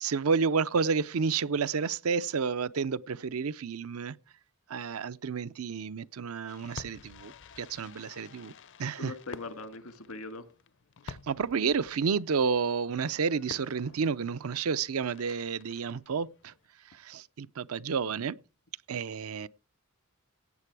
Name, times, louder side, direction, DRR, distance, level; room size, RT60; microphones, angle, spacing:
voice 1, 0.0-4.1 4.7-8.5 8.8-9.1 11.0-16.5 16.9-18.4 18.9-19.5, right 5 dB, 85° right, 0.5 m, -30 dB
Fireworks, 6.5-16.7, left 5 dB, 60° left, 0.6 m, -50 dB
voice 2, 9.0-10.5, left 2 dB, 85° left, 1.9 m, -41 dB
16.5 x 8.4 x 4.7 m
head